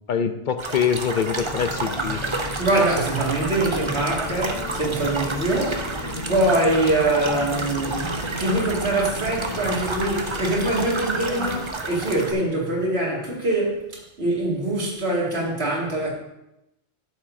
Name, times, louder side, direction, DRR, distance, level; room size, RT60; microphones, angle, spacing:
voice 1, 0.1-2.2, left 7 dB, 55° left, 9 dB, 0.7 m, -24 dB
sound 1, 0.6-12.3, right 3 dB, 30° right, 0.7 m, -30 dB
sound 2, 1.4-11.7, left 2 dB, 25° left, 1.0 m, -34 dB
voice 2, 2.6-5.9 6.3-16.1, right 2 dB, 70° right, -3 dB, 2.5 m, -24 dB
12.5 x 7.2 x 2.7 m, 0.88 s
omnidirectional pair, 1.1 m